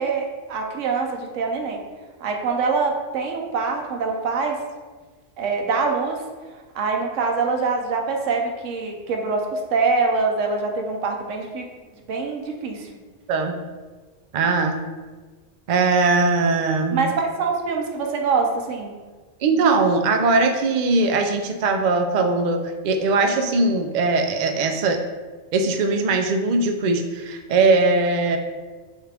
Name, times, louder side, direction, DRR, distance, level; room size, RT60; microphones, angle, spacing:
voice 1, 0.0-1.8 2.2-4.6 5.4-6.2 6.7-11.6 12.1-12.9 16.9-18.9, right 4 dB, 85° right, 2 dB, 1.0 m, -24 dB
voice 2, 13.3-13.6 14.3-14.7 15.7-17.1 19.4-22.6 22.8-25.0 25.5-28.4, right 3 dB, 60° right, 4 dB, 0.4 m, -20 dB
6.3 x 2.4 x 3.4 m, 1.4 s
omnidirectional pair, 1.3 m